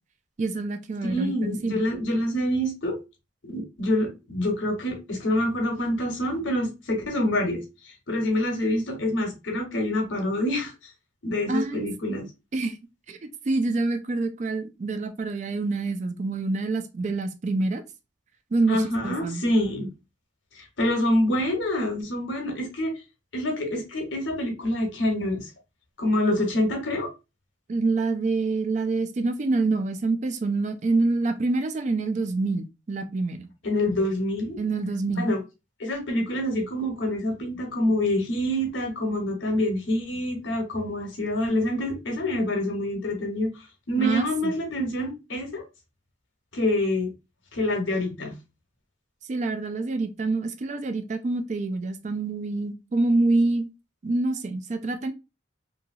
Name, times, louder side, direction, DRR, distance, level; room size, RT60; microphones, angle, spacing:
voice 1, 0.4-1.8 11.5-12.2 12.5-12.8 13.1-17.8 18.5-19.4 27.7-33.5 34.6-35.3 44.0-44.5 49.3-53.7 54.0-55.1, right 3 dB, 40° right, 0.3 m, -26 dB
voice 2, 1.0-3.0 3.4-7.6 8.1-10.9 11.2-12.3 18.7-19.9 20.6-22.9 23.3-25.5 26.0-27.1 33.6-34.6 35.2-35.4 35.8-43.5 43.9-45.6 46.5-47.1 47.5-48.3, left 1 dB, 80° left, 1.1 m, -26 dB
2.8 x 2.7 x 2.5 m
head